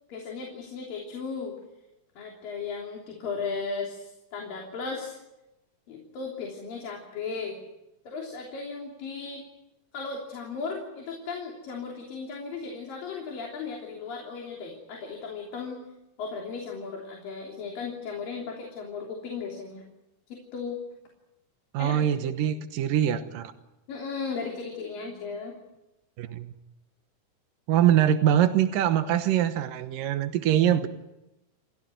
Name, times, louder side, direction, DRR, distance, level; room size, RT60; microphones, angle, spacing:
voice 1, 0.1-1.5 2.2-5.2 5.9-7.6 8.1-9.4 9.9-15.8 16.2-19.8 20.3-20.8 21.8-22.0 23.9-25.6, left 5 dB, 85° left, 0 dB, 5.0 m, -36 dB
voice 2, 21.7-23.5 26.2-26.5 27.7-30.9, right 10 dB, 85° right, 9 dB, 2.8 m, -23 dB
30.0 x 15.5 x 9.4 m, 0.94 s
omnidirectional pair, 3.9 m